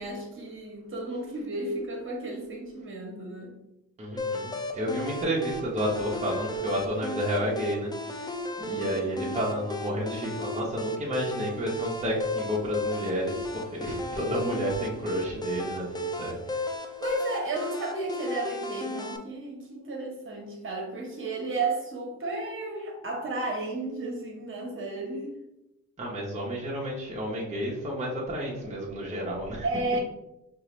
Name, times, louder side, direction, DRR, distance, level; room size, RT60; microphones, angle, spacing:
voice 1, 0.0-3.5 8.6-8.9 17.0-25.3 29.6-30.0, right 2 dB, 45° right, 0 dB, 1.2 m, -33 dB
voice 2, 4.0-16.8 26.0-29.6, equal, 20° right, -4 dB, 0.9 m, -31 dB
sound 1, 4.2-19.2, left 1 dB, 15° left, 0.4 m, -35 dB
4.6 x 2.6 x 3.1 m, 0.88 s
cardioid pair, 90°, 30 cm